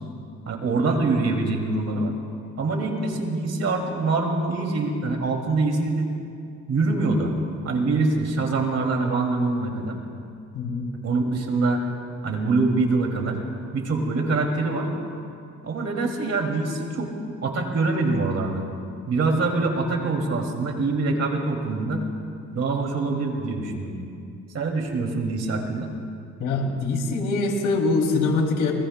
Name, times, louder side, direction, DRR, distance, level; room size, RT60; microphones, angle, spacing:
voice 1, 0.5-2.1 2.6-6.1 6.7-7.3 7.6-10.0 11.0-11.8 12.2-13.4 13.7-14.9 15.6-18.6 19.1-22.0 22.5-24.0 24.5-25.9, right 3 dB, 55° right, 2 dB, 2.5 m, -24 dB
voice 2, 10.5-10.9 26.4-28.7, left 3 dB, 85° left, 1 dB, 2.8 m, -23 dB
26.5 x 21.5 x 2.2 m, 2.4 s
cardioid pair, 90°, 30 cm